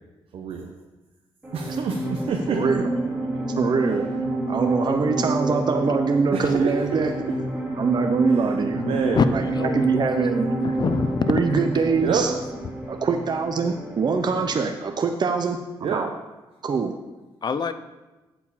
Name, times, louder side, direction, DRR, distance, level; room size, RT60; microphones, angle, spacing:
voice 1, 0.3-0.7 1.5-2.6 6.3-6.7 8.3-8.4 8.7-9.2 12.0-12.4 15.8-16.0, right 5 dB, 75° right, 2 dB, 0.9 m, -27 dB
sound 1, 1.4-14.8, right 1 dB, 10° right, 3.1 m, -29 dB
voice 2, 2.5-2.9 3.6-4.0 4.5-7.1 7.8-8.8 9.3-10.5 11.3-12.3 12.9-16.1 16.6-16.9, right 5 dB, 45° right, 5 dB, 0.7 m, -23 dB
voice 3, 9.1-9.9 10.6-11.3 17.4-17.7, left 5 dB, 45° left, 11 dB, 0.6 m, -24 dB
8.3 x 4.6 x 7.4 m, 1.1 s
cardioid pair, 80°, 10 cm